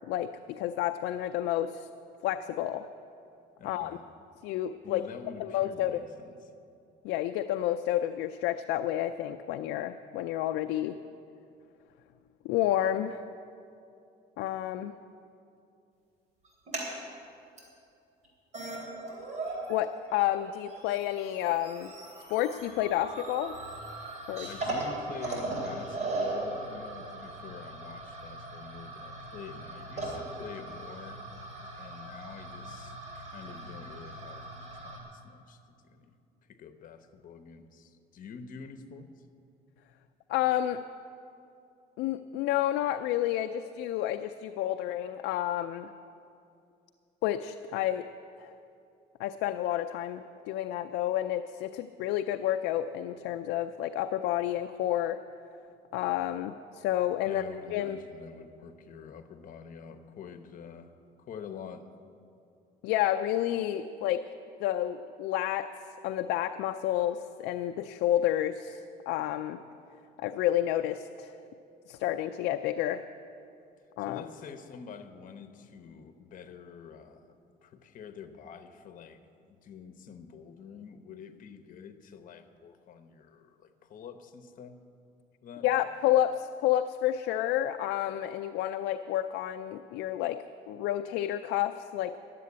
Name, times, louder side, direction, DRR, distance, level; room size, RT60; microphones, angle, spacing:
voice 1, 0.1-1.9 2.2-2.9 3.6-4.0 4.4-5.0 5.4-6.0 7.0-11.0 12.4-13.2 14.4-14.9 19.7-21.9 22.3-23.6 24.3-24.5 40.3-40.8 42.0-45.9 47.2-48.1 48.4-48.5 49.2-55.2 55.9-57.4 57.7-58.0 62.8-64.2 64.6-65.7 66.0-68.8 69.1-69.6 70.2-71.4 71.9-73.0 74.0-74.2 85.6-92.2, left 12 dB, 90° left, 7 dB, 0.4 m, -30 dB
voice 2, 3.6-4.0 4.8-6.5 24.4-31.2 31.8-36.2 36.4-39.1 57.2-60.9 61.2-61.9 74.0-77.4 77.6-79.2 79.5-84.8 85.4-85.9, left 6 dB, 50° left, 9 dB, 0.9 m, -47 dB
sound 1, 16.5-16.9 17.6-17.7 18.2-18.3 18.5-19.8 20.1-35.0, right 2 dB, 45° right, 3.2 m, -39 dB
11.0 x 7.6 x 9.6 m, 2.6 s
cardioid pair, 110°, 17 cm